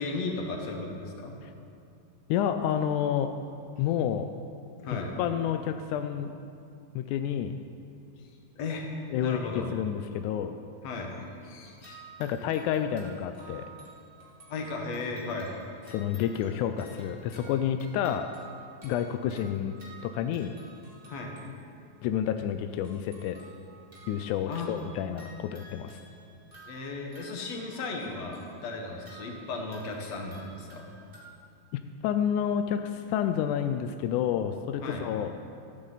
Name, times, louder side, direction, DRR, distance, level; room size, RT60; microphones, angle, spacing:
voice 1, 0.0-1.3 4.8-5.1 8.6-8.8 9.2-9.7 10.8-11.1 11.4-12.0 14.5-15.5 21.1-21.3 24.5-24.7 26.7-30.9 34.8-35.1, left 3 dB, 55° left, 1 dB, 2.4 m, -35 dB
voice 2, 2.3-3.3 3.8-4.3 5.2-6.3 7.0-7.6 9.1-9.4 9.7-10.5 12.2-13.7 15.9-18.3 18.8-19.8 20.0-20.5 22.0-23.4 24.1-26.0 31.7-35.3, left 9 dB, 85° left, 8 dB, 1.8 m, -29 dB
sound 1, 11.6-21.9 22.8-31.3, right 3 dB, 20° right, 1.4 m, -52 dB
15.5 x 14.0 x 4.0 m, 2.5 s
omnidirectional pair, 4.0 m